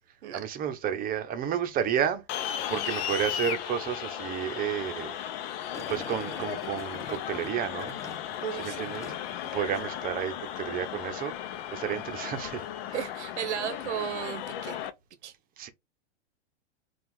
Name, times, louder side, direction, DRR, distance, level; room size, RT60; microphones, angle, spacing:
voice 1, 0.3-2.2 2.7-5.2 5.9-8.0 8.6-9.1 9.5-11.3 11.7-12.6 15.6-15.7, right 9 dB, 25° right, 0.8 m, -31 dB
sound 1, 2.3-14.9, left 10 dB, 60° left, 0.7 m, -36 dB
Gurgling, 5.7-9.5 9.8-10.2, left 3 dB, 10° left, 0.8 m, -44 dB
voice 2, 8.4-8.9 9.4-9.5 12.9-14.8 15.2-15.3, right 10 dB, 85° right, 0.9 m, -34 dB
4.4 x 2.5 x 3.6 m
supercardioid pair, 135°, 34 cm